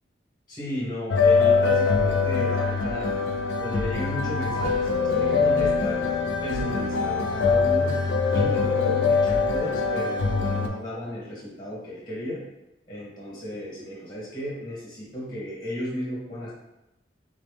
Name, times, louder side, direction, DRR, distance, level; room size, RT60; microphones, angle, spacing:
voice 1, 0.5-3.2 3.6-6.0 6.4-8.0 8.3-12.4 12.9-16.5, left 1 dB, 20° left, -6 dB, 1.2 m, -34 dB
sound 1, 1.1-10.7, left 4 dB, 80° left, 0.4 m, -23 dB
3.6 x 3.0 x 3.4 m, 0.93 s
head